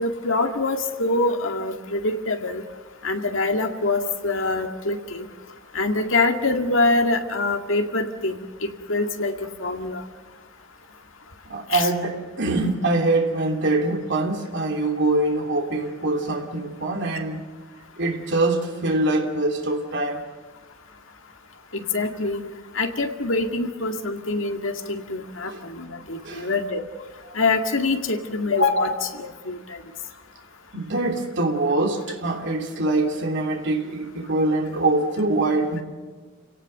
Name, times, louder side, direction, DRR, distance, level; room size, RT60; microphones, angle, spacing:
voice 1, 0.0-2.6 3.0-5.3 5.7-10.0 11.7-11.9 21.7-22.4 22.7-26.8 27.3-29.8, left 3 dB, 70° left, 2.1 m, -24 dB
voice 2, 11.5-17.4 18.0-20.2 25.5-25.6 26.2-26.5 30.7-35.8, right 2 dB, 60° right, 3.0 m, -24 dB
30.0 x 17.5 x 6.6 m
head